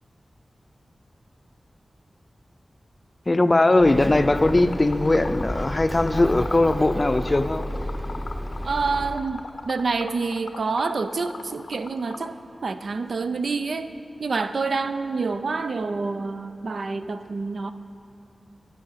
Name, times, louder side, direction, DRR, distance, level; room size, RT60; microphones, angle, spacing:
voice 1, 3.3-7.7, left 2 dB, 30° left, 10 dB, 0.5 m, -20 dB
Bird, 3.8-9.2, equal, 5° right, 0.8 m, -32 dB
Liquid, 4.3-12.3, left 4 dB, 80° left, 0.6 m, -40 dB
voice 2, 8.6-13.9 14.2-17.7, right 4 dB, 75° right, 10 dB, 0.5 m, -27 dB
11.5 x 9.5 x 5.7 m, 2.8 s
wide cardioid pair, 75°, 0 cm